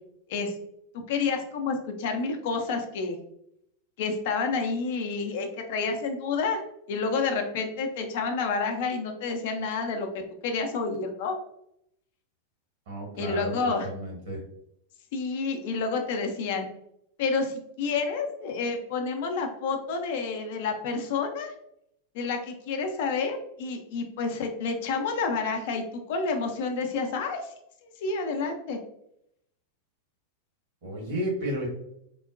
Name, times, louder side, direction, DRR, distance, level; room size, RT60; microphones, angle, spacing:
voice 1, 0.9-3.2 4.0-6.6 6.9-11.4 13.1-13.9 15.1-16.7 17.2-21.5 22.1-27.5 27.8-28.8, left 4 dB, 50° left, 5 dB, 0.4 m, -29 dB
voice 2, 12.9-13.5 13.8-14.4 30.8-31.7, right 1 dB, 55° right, -2 dB, 1.3 m, -32 dB
3.7 x 2.1 x 2.4 m, 0.76 s
figure-of-eight pair, 90°, 0 cm